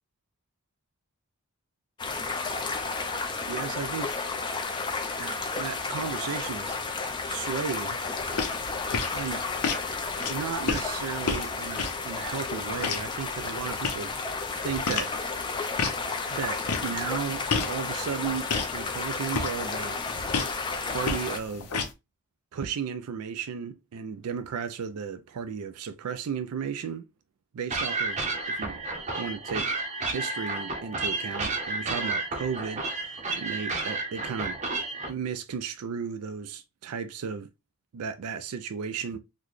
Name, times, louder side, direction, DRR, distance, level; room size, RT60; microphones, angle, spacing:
sound 1, 2.0-21.4, left 4 dB, 20° left, 0.4 m, -32 dB
voice 1, 3.5-4.1 5.2-6.8 7.3-8.0 9.1-9.4 10.3-15.1 16.3-20.3 20.9-21.7 22.5-27.0 27.5-28.8 29.2-29.7 30.0-34.6 35.1-37.5 37.9-39.2, right 6 dB, 80° right, 0.4 m, -34 dB
sound 2, 8.2-21.9, left 4 dB, 90° left, 0.7 m, -34 dB
sound 3, 27.7-35.1, right 3 dB, 30° right, 0.6 m, -31 dB
4.0 x 2.1 x 3.0 m
head